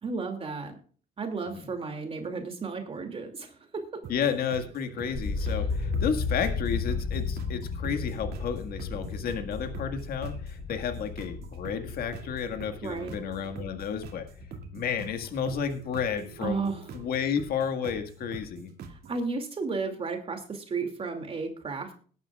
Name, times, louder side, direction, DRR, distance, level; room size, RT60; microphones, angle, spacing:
voice 1, 0.0-0.8 1.2-4.0 5.4-5.5 12.8-13.1 16.4-16.9 18.9-21.9, right 4 dB, 35° right, 5 dB, 2.5 m, -33 dB
sound 1, 4.0-19.2, right 4 dB, 65° right, 2.6 m, -44 dB
voice 2, 4.1-14.3 14.7-18.7, left 7 dB, 65° left, 6 dB, 1.8 m, -32 dB
sound 2, 5.1-15.1 15.4-16.1, left 4 dB, 35° left, 5.7 m, -34 dB
20.0 x 10.5 x 2.4 m, 0.42 s
cardioid pair, 110°, 17 cm